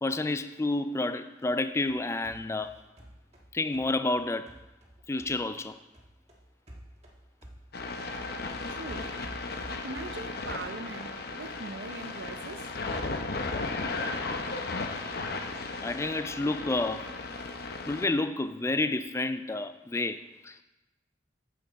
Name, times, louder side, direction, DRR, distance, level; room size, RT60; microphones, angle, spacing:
voice 1, 0.0-2.7 3.5-4.5 5.1-5.8 15.0-15.2 15.8-17.1 17.9-20.6, left 2 dB, 15° left, 0.3 m, -30 dB
sound 1, 1.4-5.7 5.9-10.3, equal, 35° right, 1.6 m, -49 dB
sound 2, 7.7-18.1, left 3 dB, 55° left, 0.8 m, -35 dB
voice 2, 8.7-9.1 9.8-12.7, right 3 dB, 80° right, 0.7 m, -41 dB
8.9 x 7.6 x 4.1 m
head